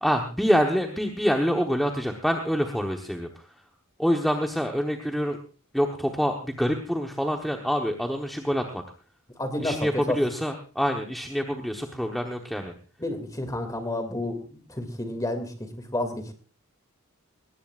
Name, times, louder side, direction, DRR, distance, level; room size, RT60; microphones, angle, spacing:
voice 1, 0.0-3.3 4.0-5.4 5.7-8.8 9.6-12.7, equal, ahead, 2 dB, 1.1 m, -26 dB
voice 2, 9.4-10.2 13.0-16.3, left 1 dB, 15° left, 7 dB, 2.4 m, -30 dB
20.0 x 18.0 x 2.5 m, 0.38 s
head